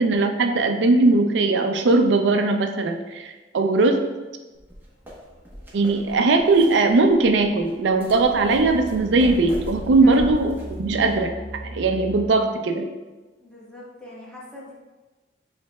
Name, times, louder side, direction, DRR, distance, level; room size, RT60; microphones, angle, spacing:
voice 1, 0.0-4.0 5.7-11.3 11.6-12.9, right 3 dB, 85° right, 5 dB, 0.4 m, -19 dB
sound 1, 4.6-11.2, equal, 10° right, 0.9 m, -39 dB
sound 2, 5.0-12.3, equal, 55° left, 0.8 m, -40 dB
voice 2, 13.4-14.7, left 2 dB, 5° left, -7 dB, 1.2 m, -40 dB
7.4 x 3.2 x 2.2 m, 1.2 s
head